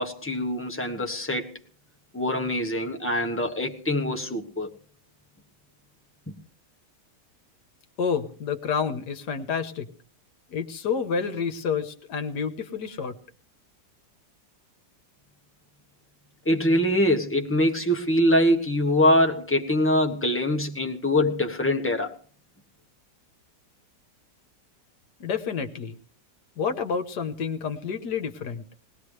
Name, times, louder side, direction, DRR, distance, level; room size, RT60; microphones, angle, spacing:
voice 1, 0.0-1.5 2.1-4.7 6.3-6.4 16.4-22.2, left 1 dB, 10° left, 1.1 m, -23 dB
voice 2, 8.0-9.9 10.5-13.2 25.2-26.0 26.6-28.6, left 6 dB, 65° left, 1.7 m, -29 dB
20.0 x 19.0 x 3.3 m
omnidirectional pair, 2.0 m